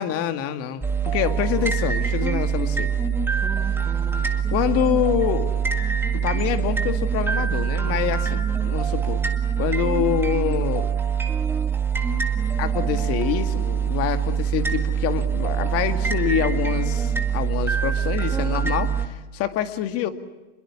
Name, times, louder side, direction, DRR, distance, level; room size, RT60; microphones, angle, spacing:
voice 1, 0.0-2.9 4.5-5.5 6.1-9.2 9.6-10.9 12.6-20.1, left 10 dB, 40° left, 9 dB, 2.2 m, -26 dB
sound 1, 0.8-19.1, right 7 dB, 5° right, 1.9 m, -24 dB
27.5 x 22.0 x 7.2 m, 1.1 s
supercardioid pair, 130°, 35 cm